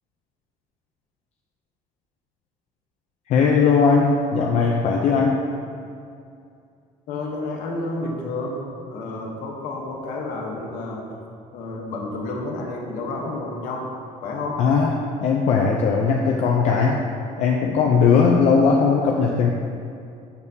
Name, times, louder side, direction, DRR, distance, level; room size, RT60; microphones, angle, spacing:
voice 1, 3.3-5.4 14.6-14.9 15.2-17.0 17.4-19.5, left 5 dB, 50° left, -1 dB, 0.5 m, -18 dB
voice 2, 7.1-8.6 8.9-11.1 11.5-13.9 14.2-14.6, left 2 dB, 80° left, 0 dB, 1.1 m, -30 dB
6.8 x 6.5 x 2.8 m, 2.5 s
cardioid pair, 170°, 14 cm